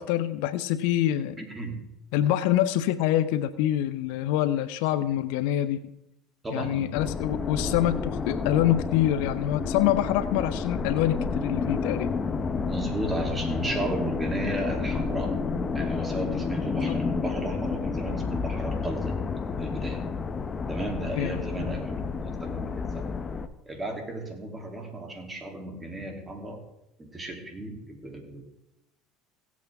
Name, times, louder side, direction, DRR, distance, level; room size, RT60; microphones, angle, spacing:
voice 1, 0.0-1.4 2.1-5.8 6.5-12.2 21.1-21.4, left 12 dB, 75° left, 13 dB, 0.6 m, -25 dB
voice 2, 1.4-1.9 6.4-6.9 12.7-15.4 15.7-19.2 19.6-20.1 20.7-23.1 23.6-26.6 27.0-28.4, right 1 dB, 20° right, 2 dB, 2.9 m, -34 dB
sound 1, 6.9-23.5, left 4 dB, 30° left, 0.8 m, -30 dB
17.0 x 8.3 x 3.5 m, 0.88 s
supercardioid pair, 90°, 0 cm